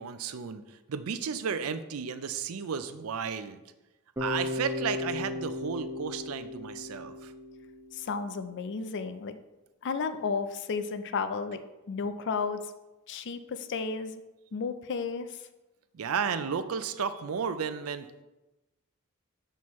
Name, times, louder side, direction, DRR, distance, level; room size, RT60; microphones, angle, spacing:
voice 1, 0.0-3.6 4.2-7.3 15.9-18.2, right 6 dB, 85° right, 11 dB, 0.5 m, -33 dB
Bass guitar, 4.2-8.2, left 2 dB, 15° right, 0.8 m, -36 dB
voice 2, 7.9-9.4 9.8-11.6 11.9-12.6 13.1-14.2 14.5-15.3, left 5 dB, 55° left, 10 dB, 0.4 m, -33 dB
6.2 x 5.6 x 3.1 m, 1.0 s
head